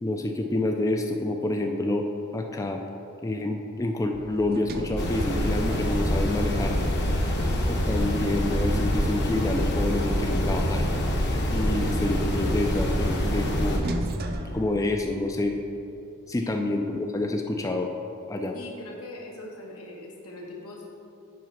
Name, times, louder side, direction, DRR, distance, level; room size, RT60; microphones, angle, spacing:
voice 1, 0.0-2.8 3.2-6.7 7.7-10.8 11.5-13.8 14.5-15.6 16.3-17.9 18.3-18.6, left 2 dB, 15° left, 3 dB, 0.4 m, -28 dB
Sliding door, 4.1-9.0 10.6-15.5, right 1 dB, 45° right, 0.5 m, -38 dB
sound 1, 5.0-13.8, equal, 55° left, 1.1 m, -26 dB
voice 2, 16.3-16.7 18.5-20.9, left 1 dB, 80° left, -2 dB, 1.5 m, -41 dB
7.6 x 4.9 x 5.7 m, 2.7 s
head